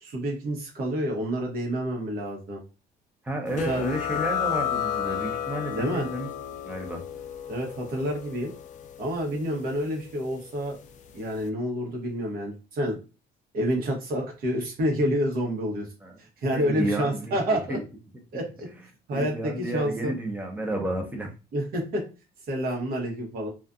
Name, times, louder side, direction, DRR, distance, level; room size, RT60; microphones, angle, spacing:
voice 1, 0.0-2.6 3.5-3.8 5.7-6.1 7.5-8.5 9.0-10.8 11.1-13.0 13.5-15.9 16.4-17.8 18.3-18.4 19.1-20.1 21.5-22.0 22.5-23.5, equal, 60° right, 1.0 m, -28 dB
voice 2, 3.2-6.3 6.6-7.0 16.0-16.2 16.5-17.8 19.1-21.3, right 1 dB, 10° right, 0.7 m, -31 dB
sound 1, 3.6-10.8, left 9 dB, 45° left, 0.4 m, -33 dB
2.5 x 2.4 x 2.3 m
cardioid pair, 110°, 17 cm